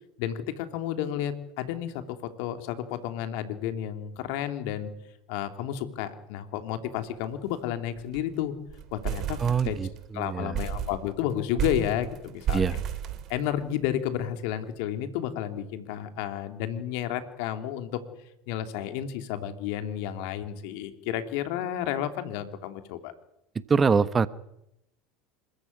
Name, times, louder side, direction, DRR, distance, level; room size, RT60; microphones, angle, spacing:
voice 1, 0.2-4.9 5.3-8.5 8.9-9.4 9.6-9.8 10.1-12.8 13.3-18.0 18.5-23.1, left 11 dB, 70° left, 8 dB, 3.1 m, -31 dB
sound 1, 7.0-7.3 7.5-7.6 8.0-8.3 8.7-10.1 10.5-13.8, right 8 dB, 50° right, 3.0 m, -33 dB
voice 2, 9.4-9.9 10.1-10.6 12.5-12.8 23.7-24.3, right 5 dB, 25° right, 15 dB, 1.1 m, -24 dB
26.5 x 15.0 x 9.7 m, 0.84 s
hypercardioid pair, 85°, 0 cm